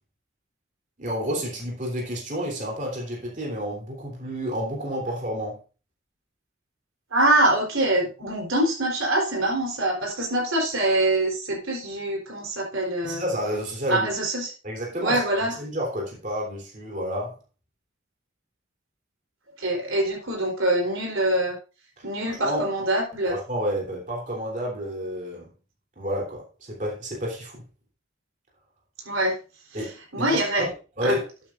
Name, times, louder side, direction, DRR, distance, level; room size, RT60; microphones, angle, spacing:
voice 1, 1.0-5.6 13.0-14.1 14.6-17.3 22.0-22.7 23.3-25.5 26.0-27.6 29.7-31.3, equal, 40° right, 3.4 m, -30 dB
voice 2, 7.1-13.2 13.9-14.5 15.0-15.5 19.6-21.6 22.0-23.4 29.1-29.4 30.1-30.6 31.0-31.2, right 1 dB, 90° right, 3.8 m, -24 dB
12.0 x 8.9 x 2.5 m
head